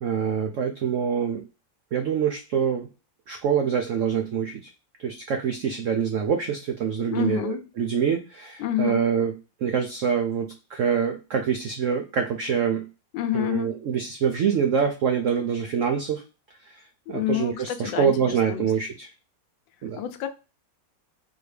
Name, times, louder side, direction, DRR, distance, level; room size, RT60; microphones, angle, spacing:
voice 1, 0.0-1.4 1.9-2.9 3.3-4.7 5.0-9.3 9.6-12.8 13.3-16.2 16.7-16.8 17.1-19.1 19.8-20.0, right 7 dB, 80° right, 0.7 m, -25 dB
voice 2, 7.1-7.7 8.6-9.0 13.1-13.7 17.1-18.7 20.0-20.3, left 12 dB, 85° left, 1.3 m, -28 dB
3.9 x 2.8 x 3.2 m
omnidirectional pair, 2.0 m